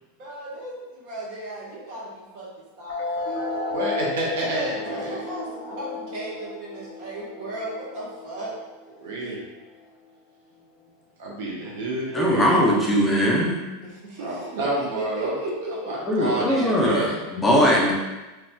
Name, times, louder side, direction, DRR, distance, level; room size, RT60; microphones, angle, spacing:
voice 1, 0.2-2.5 2.8-3.4 4.9-8.5 13.8-15.9, right 1 dB, 55° right, -6 dB, 1.2 m, -35 dB
sound 1, 2.9-9.9, left 3 dB, 65° left, 0.7 m, -33 dB
voice 2, 3.7-5.2 9.0-9.4 11.2-12.7 14.2-15.4 15.9-17.2, right 2 dB, 75° right, -3 dB, 0.7 m, -29 dB
voice 3, 12.1-13.6 16.0-17.9, equal, 10° left, -4 dB, 0.5 m, -20 dB
3.0 x 2.8 x 2.2 m, 1.1 s
supercardioid pair, 130°, 0 cm